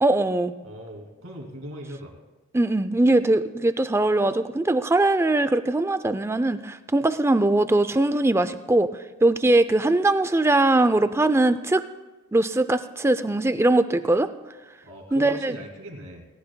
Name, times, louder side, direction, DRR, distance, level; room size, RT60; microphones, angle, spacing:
voice 1, 0.0-0.5 2.5-8.9 9.2-11.8 12.3-14.3 15.1-15.6, right 2 dB, 10° right, 12 dB, 0.4 m, -21 dB
voice 2, 0.6-2.2 14.8-16.2, equal, 65° right, 1 dB, 2.5 m, -39 dB
18.5 x 17.5 x 2.2 m, 1.1 s
head